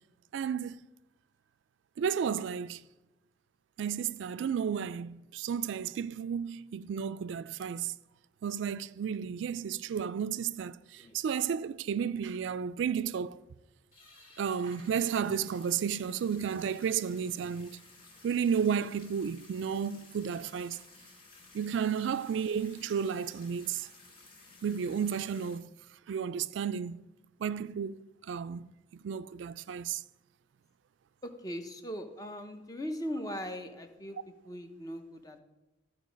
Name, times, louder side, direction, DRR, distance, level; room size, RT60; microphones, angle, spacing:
voice 1, 0.3-0.8 2.0-2.8 3.8-8.0 8.4-13.4 14.4-17.8 18.2-20.8 21.5-23.9 24.6-25.8 26.1-27.1 27.4-30.0, right 7 dB, 75° right, 0.3 m, -33 dB
sound 1, 9.9-10.0 10.3-10.4 10.8-11.5 11.9-12.0 12.1-12.2 12.6-12.7 13.2-13.4 13.8-25.6, left 3 dB, 50° left, 2.1 m, -56 dB
voice 2, 31.2-34.2 34.4-35.4, equal, 20° left, 0.7 m, -39 dB
12.5 x 4.7 x 5.1 m
head